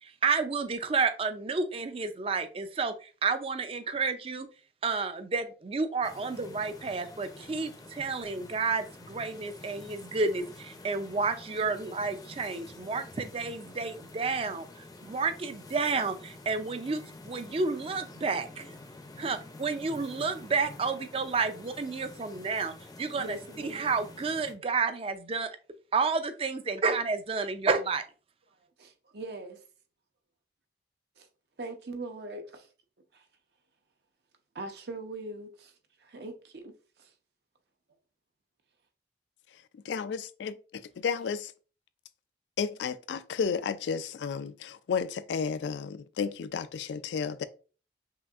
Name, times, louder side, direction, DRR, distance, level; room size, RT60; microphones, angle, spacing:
voice 1, 0.0-4.5 4.8-18.7 19.2-25.5 25.9-28.0, right 4 dB, 30° right, 0.4 m, -31 dB
sound 1, 6.0-24.5, left 2 dB, 20° left, 0.5 m, -49 dB
voice 2, 23.1-23.8 28.8-29.6 31.2-31.3 31.6-32.7 33.1-33.2 34.5-35.7 36.0-36.7 37.0-37.1, right 2 dB, 65° right, 0.7 m, -41 dB
voice 3, 39.9-40.5 41.0-41.4 42.6-47.4, left 6 dB, 80° left, 0.3 m, -32 dB
5.6 x 2.5 x 2.4 m
head